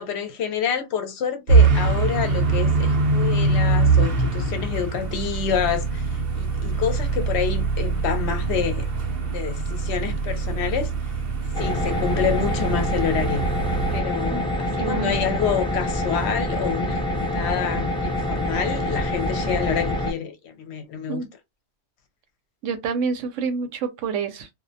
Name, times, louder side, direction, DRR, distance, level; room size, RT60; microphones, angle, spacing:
voice 1, 0.0-6.1 6.3-8.9 9.2-10.9 11.6-13.4 13.9-21.2, left 7 dB, 70° left, 0.8 m, -28 dB
sound 1, 1.5-14.0, right 4 dB, 60° right, 0.7 m, -23 dB
sound 2, 11.5-20.1, left 1 dB, 10° left, 0.3 m, -26 dB
voice 2, 14.8-15.2 21.1-21.3 22.6-24.5, right 5 dB, 85° right, 0.9 m, -27 dB
2.3 x 2.1 x 2.5 m
omnidirectional pair, 1.2 m